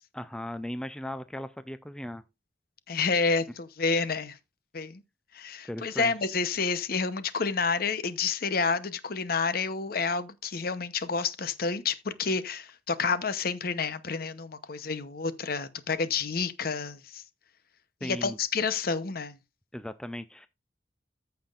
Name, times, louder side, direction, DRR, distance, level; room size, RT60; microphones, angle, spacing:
voice 1, 0.1-2.2 5.6-6.1 18.0-18.4 19.7-20.5, left 1 dB, 5° left, 0.4 m, -37 dB
voice 2, 2.9-4.4 4.7-5.0 5.3-17.2 18.0-19.4, left 4 dB, 55° left, 0.8 m, -29 dB
14.0 x 5.8 x 2.4 m
head